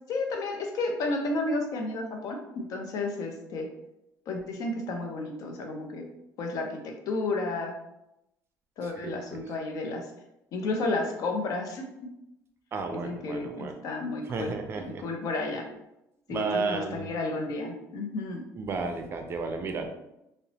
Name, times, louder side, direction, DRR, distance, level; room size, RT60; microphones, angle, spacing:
voice 1, 0.1-3.7 4.3-6.0 6.4-7.7 8.8-10.1 10.5-11.9 12.9-15.7 16.3-18.4, left 2 dB, 65° left, 3 dB, 0.5 m, -32 dB
voice 2, 8.8-9.4 12.7-13.7 14.3-15.1 16.3-17.1 18.6-19.9, right 4 dB, 40° right, 5 dB, 0.4 m, -33 dB
2.8 x 2.0 x 2.7 m, 0.87 s
cardioid pair, 130°, 7 cm